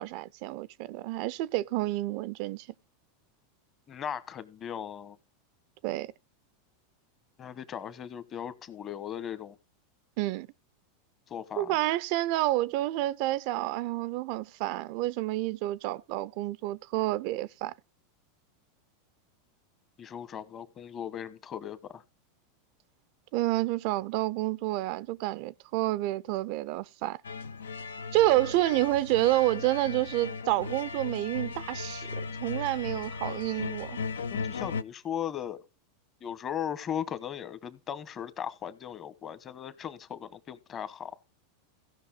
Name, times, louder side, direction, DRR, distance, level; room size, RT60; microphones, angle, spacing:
voice 1, 0.0-2.7 5.8-6.1 10.2-10.5 11.6-17.7 23.3-27.2 28.1-32.1 32.4-34.0, right 17 dB, 60° right, 0.4 m, -29 dB
voice 2, 3.9-5.2 7.4-9.6 11.3-11.8 20.0-22.0 34.3-35.6 36.2-41.1, left 9 dB, 35° left, 1.1 m, -37 dB
sound 1, 27.2-34.8, left 4 dB, 90° left, 0.4 m, -37 dB
16.5 x 5.7 x 4.0 m
hypercardioid pair, 95°, 0 cm